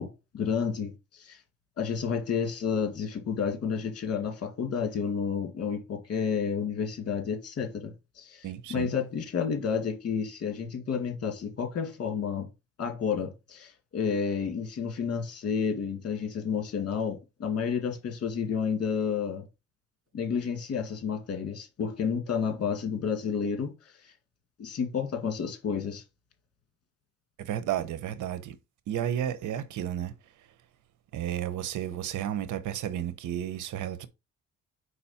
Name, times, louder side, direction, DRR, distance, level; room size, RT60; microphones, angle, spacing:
voice 1, 0.0-1.4 1.8-12.5 12.8-19.4 20.1-23.7 24.6-26.0, left 6 dB, 55° left, 2.1 m, -30 dB
voice 2, 8.4-8.9 27.4-28.6 28.9-30.2 31.1-34.1, right 10 dB, 75° right, 0.9 m, -32 dB
4.9 x 4.1 x 5.7 m
cardioid pair, 90°, 30 cm